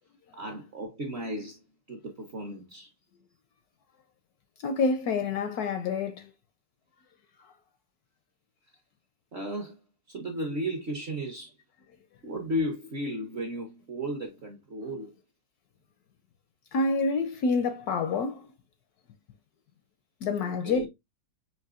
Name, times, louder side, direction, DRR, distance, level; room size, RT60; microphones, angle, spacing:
voice 1, 0.4-1.6 1.9-2.9 9.3-9.8 10.1-11.5 12.2-15.1 20.4-20.9, equal, 55° right, 0.7 m, -34 dB
voice 2, 4.6-6.3 16.7-18.5 20.2-20.9, left 4 dB, 70° left, 0.9 m, -27 dB
5.8 x 2.9 x 2.3 m
omnidirectional pair, 2.0 m